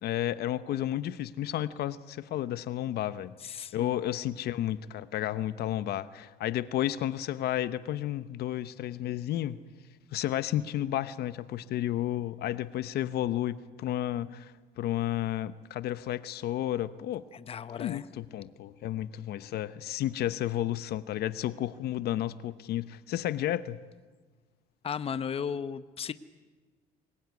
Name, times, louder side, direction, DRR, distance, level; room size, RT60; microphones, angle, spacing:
voice 1, 0.0-3.3 3.7-9.6 10.1-14.5 14.8-17.2 17.7-23.8, left 12 dB, 70° left, 1.0 m, -32 dB
voice 2, 3.4-4.2 17.3-18.1 24.8-26.1, left 7 dB, 35° left, 0.9 m, -36 dB
25.0 x 21.5 x 9.6 m
cardioid pair, 110°, 17 cm